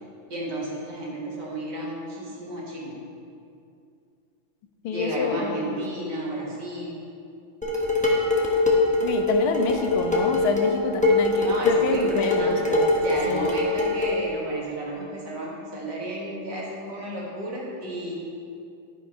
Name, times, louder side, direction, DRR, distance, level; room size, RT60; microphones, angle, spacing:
voice 1, 0.3-3.0 4.9-7.0 11.4-12.7 13.0-18.1, right 1 dB, 55° right, -4 dB, 2.3 m, -32 dB
voice 2, 4.8-5.8 9.0-12.9 13.3-13.5, left 5 dB, 85° left, 5 dB, 1.6 m, -27 dB
Dishes pots and pans, 7.6-14.2, left 2 dB, 5° left, 0.6 m, -23 dB
11.5 x 4.9 x 5.4 m, 2.5 s
omnidirectional pair, 2.3 m